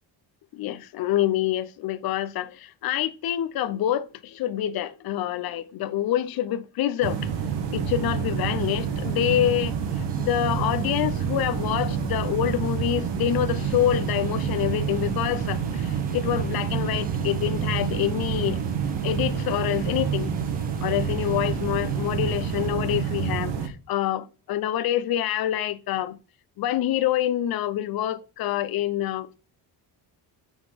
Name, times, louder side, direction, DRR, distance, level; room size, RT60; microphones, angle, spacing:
voice 1, 0.5-7.3 7.7-9.8 10.2-18.6 19.0-20.3 20.8-26.2 26.6-29.4, left 12 dB, 55° left, 0.6 m, -26 dB
sound 1, 7.0-23.7, right 7 dB, 70° right, 1.3 m, -28 dB
sound 2, 8.6-22.7, right 5 dB, 20° right, 0.7 m, -43 dB
7.1 x 3.9 x 5.1 m
cardioid pair, 165°, 44 cm